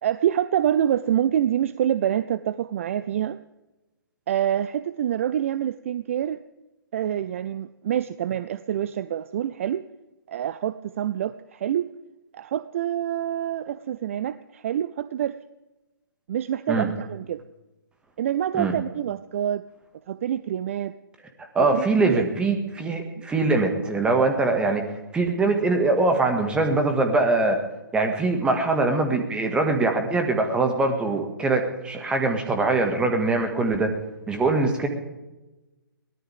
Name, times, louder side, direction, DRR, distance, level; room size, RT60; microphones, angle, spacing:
voice 1, 0.0-3.4 4.3-6.4 6.9-9.8 10.3-11.9 12.3-15.3 16.3-17.4 18.2-19.6 20.1-20.9 21.6-22.2 23.2-23.3, right 10 dB, 35° right, 15 dB, 0.5 m, -26 dB
voice 2, 21.6-24.8 25.1-27.6 27.9-33.9 34.3-34.9, right 3 dB, 10° right, 4 dB, 1.9 m, -22 dB
23.0 x 17.0 x 3.6 m, 1.0 s
figure-of-eight pair, 130°, 12 cm